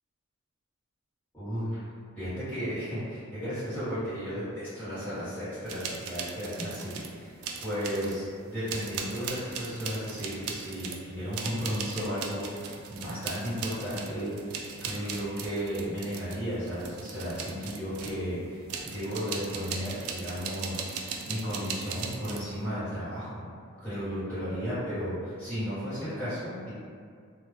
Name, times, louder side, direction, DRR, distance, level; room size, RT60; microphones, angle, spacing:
voice 1, 1.3-1.8 2.2-7.3 7.6-23.4 23.8-26.8, equal, 10° left, -16 dB, 1.1 m, -34 dB
sound 1, 5.7-7.1 7.4-8.3 8.7-18.2 18.7-22.5, right 5 dB, 80° right, 0.3 m, -38 dB
2.2 x 2.0 x 3.1 m, 2.2 s
head